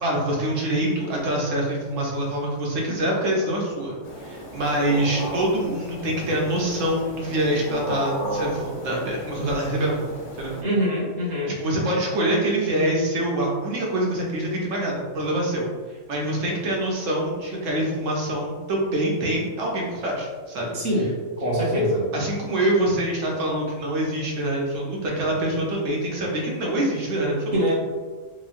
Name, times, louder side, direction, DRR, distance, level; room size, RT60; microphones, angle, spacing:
voice 1, 0.0-3.9 4.2-10.1 10.4-10.6 11.6-15.7 16.1-20.7 22.1-27.6, right 1 dB, 85° right, -2 dB, 1.1 m, -25 dB
sound 1, 4.0-10.6, equal, 55° left, 0.6 m, -34 dB
voice 2, 10.6-11.5 20.7-21.1 21.4-22.1 27.5-27.7, equal, 40° right, -5 dB, 0.7 m, -23 dB
3.0 x 2.2 x 2.4 m, 1.4 s
omnidirectional pair, 1.3 m